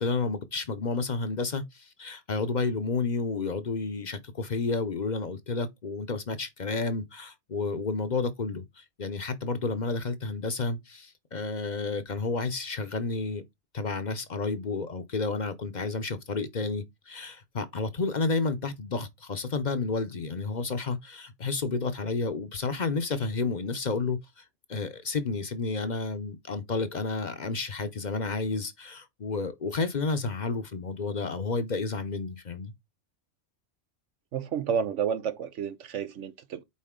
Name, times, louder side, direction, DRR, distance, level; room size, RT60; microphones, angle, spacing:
voice 1, 0.0-13.4 13.7-32.7, left 4 dB, 45° left, 0.8 m, -31 dB
voice 2, 34.3-36.6, right 7 dB, 90° right, 1.2 m, -30 dB
8.5 x 4.0 x 3.7 m
omnidirectional pair, 1.2 m